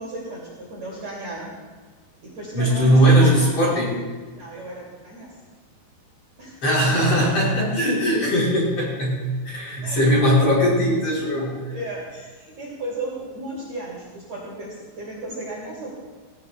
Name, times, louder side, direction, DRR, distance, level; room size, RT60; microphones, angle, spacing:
voice 1, 0.0-1.5 2.2-3.6 4.3-5.3 6.4-6.6 9.8-10.0 11.4-15.9, right 1 dB, 40° right, -5 dB, 3.1 m, -35 dB
voice 2, 2.5-3.9 6.6-11.5, equal, 35° left, -5 dB, 4.6 m, -19 dB
18.5 x 16.0 x 2.3 m, 1.4 s
omnidirectional pair, 5.3 m